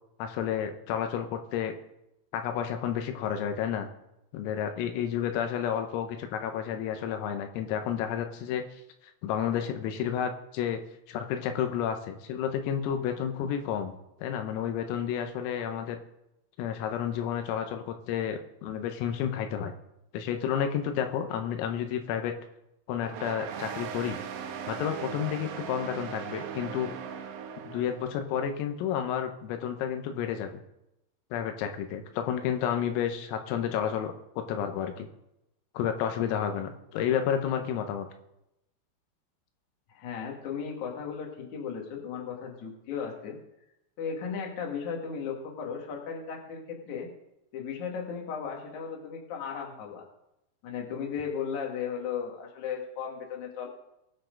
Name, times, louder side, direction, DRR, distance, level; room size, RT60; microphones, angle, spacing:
voice 1, 0.2-1.7 2.3-3.9 4.3-8.7 9.2-10.8 11.1-13.9 14.2-16.0 16.6-19.7 20.1-22.3 22.9-24.2 24.7-27.0 27.7-30.6 31.3-35.1 35.8-38.1, left 9 dB, 85° left, 6 dB, 3.7 m, -31 dB
sound 1, 23.0-28.1, right 8 dB, 90° right, 2.2 m, -38 dB
voice 2, 39.9-43.4 44.0-47.1 47.5-50.1 50.6-53.7, left 6 dB, 50° left, 0 dB, 2.5 m, -36 dB
21.0 x 7.2 x 3.9 m, 0.86 s
omnidirectional pair, 5.9 m